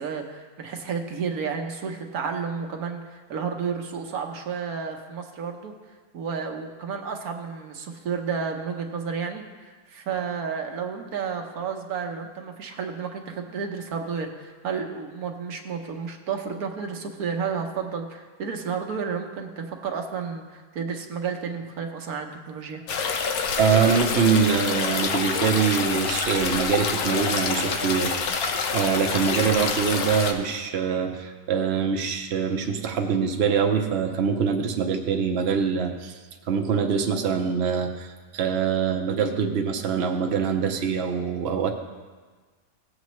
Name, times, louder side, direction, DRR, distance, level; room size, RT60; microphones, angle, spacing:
voice 1, 0.0-5.7 6.1-22.8, right 6 dB, 75° right, 3 dB, 1.4 m, -31 dB
sound 1, 22.9-30.3, left 5 dB, 75° left, 1.3 m, -27 dB
voice 2, 23.6-28.1 28.7-36.2 36.5-41.7, right 6 dB, 50° right, 3 dB, 0.9 m, -24 dB
17.5 x 7.8 x 3.1 m, 1.4 s
omnidirectional pair, 1.6 m